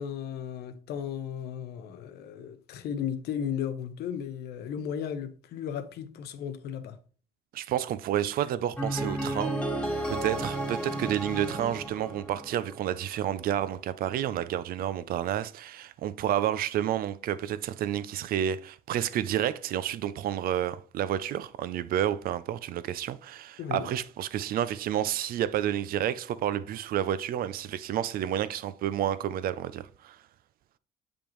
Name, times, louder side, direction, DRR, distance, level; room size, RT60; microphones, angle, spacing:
voice 1, 0.0-7.0 10.3-10.4 23.6-23.9, left 8 dB, 75° left, 0.8 m, -35 dB
voice 2, 7.5-9.6 10.1-30.2, right 11 dB, 60° right, 0.4 m, -30 dB
sound 1, 8.8-12.8, right 1 dB, 5° left, 1.5 m, -33 dB
7.0 x 5.1 x 3.0 m
cardioid pair, 110°, 17 cm